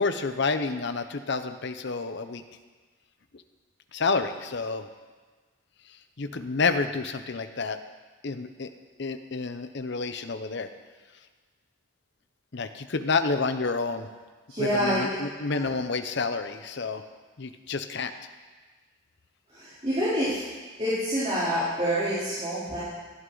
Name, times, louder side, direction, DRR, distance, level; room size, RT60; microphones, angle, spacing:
voice 1, 0.0-2.4 3.9-4.9 6.2-7.8 8.2-8.7 9.0-10.7 12.5-14.1 14.6-17.0 17.4-18.1, left 4 dB, 55° left, 9 dB, 0.7 m, -29 dB
voice 2, 14.5-15.0 15.6-15.7 19.5-20.4 20.8-22.8, equal, 30° right, -11 dB, 3.6 m, -27 dB
17.0 x 11.5 x 4.0 m, 1.4 s
head